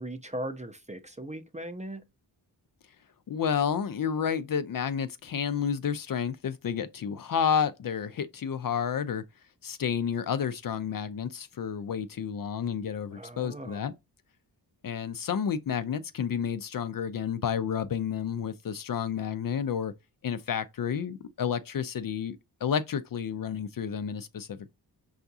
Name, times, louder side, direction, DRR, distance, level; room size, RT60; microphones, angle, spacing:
voice 1, 0.0-2.0 13.1-13.8, right 1 dB, 15° right, 0.5 m, -38 dB
voice 2, 3.3-9.2 9.6-13.9 14.8-19.9 20.2-24.7, left 7 dB, 55° left, 0.5 m, -30 dB
5.6 x 2.4 x 2.6 m
wide cardioid pair, 95°, 43 cm